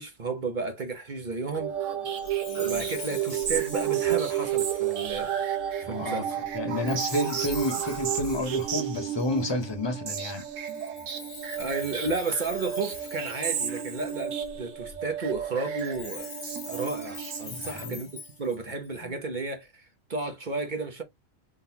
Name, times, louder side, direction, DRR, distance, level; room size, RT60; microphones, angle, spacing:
voice 1, 0.0-1.7 2.6-5.3 5.8-6.4 11.6-16.3 16.7-21.0, right 3 dB, 40° right, 0.9 m, -33 dB
sound 1, 1.5-18.0, right 9 dB, 65° right, 1.2 m, -31 dB
Chime, 2.2-5.5 6.9-9.7 10.6-14.5 15.7-18.9, left 4 dB, 50° left, 0.3 m, -44 dB
voice 2, 5.9-6.2 6.5-10.5 17.5-18.0 19.0-19.1, left 1 dB, 20° left, 0.9 m, -30 dB
3.8 x 3.4 x 2.8 m
omnidirectional pair, 1.5 m